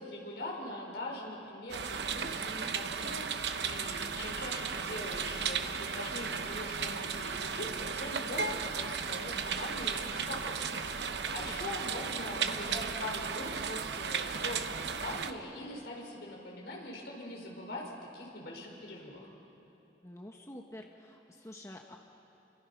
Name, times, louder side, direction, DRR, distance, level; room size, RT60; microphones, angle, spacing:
voice 1, 0.0-10.9 11.3-19.3, left 1 dB, 70° left, -1 dB, 5.2 m, -42 dB
sound 1, 1.7-15.3, right 6 dB, 75° right, 0.9 m, -35 dB
voice 2, 11.3-11.7 20.0-22.0, left 1 dB, 15° left, 2 dB, 1.1 m, -48 dB
29.0 x 25.0 x 5.8 m, 2.9 s
head